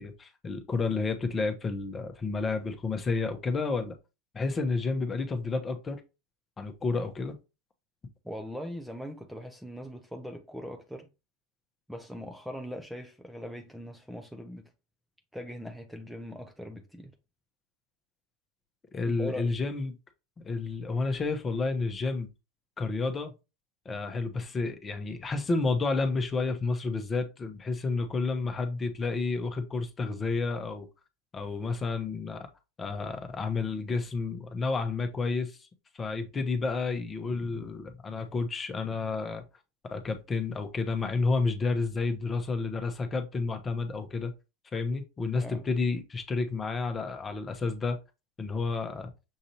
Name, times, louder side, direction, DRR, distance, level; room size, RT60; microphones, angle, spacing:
voice 1, 0.0-3.9 4.3-6.0 6.6-7.3 18.9-20.0 20.4-22.3 22.8-23.3 23.8-30.9 31.3-32.5 32.8-35.7 35.9-39.4 39.9-44.3 44.7-48.0 48.4-49.1, left 3 dB, 25° left, 0.9 m, -30 dB
voice 2, 8.2-11.1 11.9-14.7 15.3-17.1 19.1-19.6 45.4-45.6, equal, ahead, 0.7 m, -40 dB
6.5 x 2.6 x 2.9 m
hypercardioid pair, 90°, 0 cm